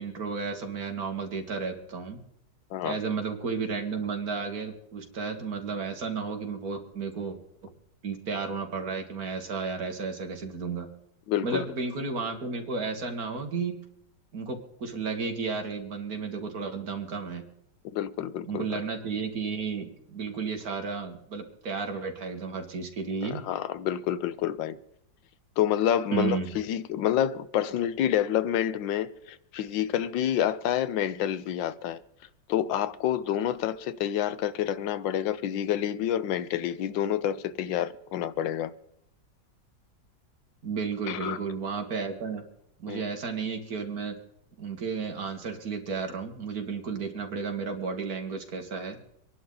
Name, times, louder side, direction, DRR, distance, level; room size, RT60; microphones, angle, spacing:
voice 1, 0.0-2.2 2.8-7.4 7.6-7.7 8.0-10.9 11.4-13.8 14.3-17.5 18.5-23.4 26.1-26.5 40.6-42.4 42.8-44.2 44.6-49.0, right 5 dB, 55° right, 2.0 m, -33 dB
voice 2, 11.3-11.6 17.9-18.8 23.2-24.8 25.6-32.0 32.5-38.7 41.1-41.4 42.9-43.0, left 10 dB, 90° left, 1.4 m, -28 dB
25.0 x 11.0 x 3.9 m
omnidirectional pair, 2.0 m